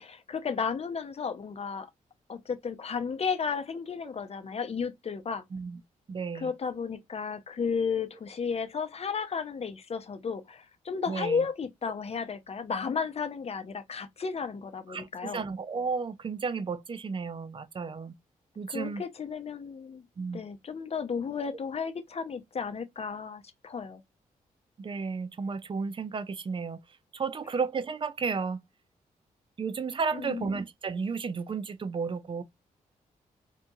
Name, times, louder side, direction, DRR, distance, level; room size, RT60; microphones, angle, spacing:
voice 1, 0.0-1.9 2.3-5.4 6.3-15.5 18.7-20.0 20.3-24.0 30.1-30.6, left 5 dB, 45° left, 0.6 m, -33 dB
voice 2, 6.1-6.5 11.1-11.5 14.9-18.1 18.6-19.0 20.2-20.4 24.8-26.8 27.1-28.6 29.6-32.4, right 5 dB, 35° right, 0.4 m, -33 dB
2.9 x 2.2 x 2.6 m
supercardioid pair, 55°, 15 cm